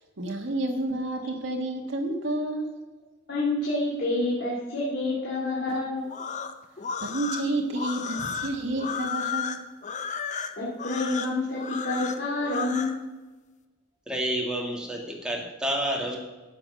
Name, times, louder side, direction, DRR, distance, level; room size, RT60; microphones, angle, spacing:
voice 1, 0.2-2.7 7.0-9.7, right 1 dB, 70° right, 2 dB, 1.6 m, -30 dB
voice 2, 3.3-6.1 10.6-13.0, left 2 dB, 60° left, -7 dB, 3.0 m, -28 dB
sound 1, 6.1-13.0, left 6 dB, 40° left, 0.8 m, -33 dB
voice 3, 14.1-16.2, right 1 dB, 5° right, -1 dB, 2.4 m, -29 dB
12.0 x 7.7 x 6.5 m, 1.2 s
head